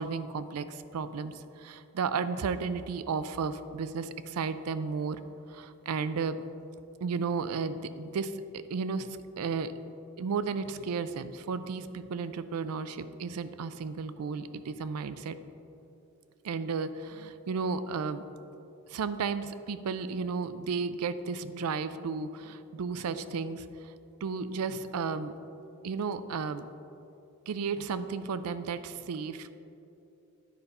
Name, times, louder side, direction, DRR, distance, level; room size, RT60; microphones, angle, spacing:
voice 1, 0.0-5.2 5.5-6.4 7.0-8.4 8.7-9.7 10.2-15.4 16.4-18.2 18.9-23.9 24.2-25.3 25.8-26.7 27.5-29.5, right 5 dB, 85° right, 13 dB, 0.4 m, -33 dB
10.0 x 5.3 x 4.2 m, 2.8 s
head